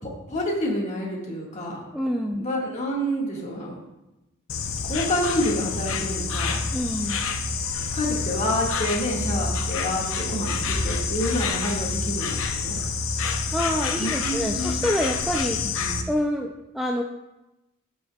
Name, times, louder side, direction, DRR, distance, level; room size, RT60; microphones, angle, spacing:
voice 1, 0.0-1.8 2.4-3.8 4.8-6.6 7.9-12.8 14.0-14.8 15.8-16.0, left 1 dB, 35° left, -2 dB, 1.7 m, -28 dB
voice 2, 1.9-2.4 6.7-7.2 13.5-15.6 16.1-17.0, equal, ahead, 1 dB, 0.3 m, -26 dB
Insect, 4.5-16.0, left 4 dB, 65° left, 0.7 m, -28 dB
15.0 x 5.4 x 2.3 m, 0.98 s
head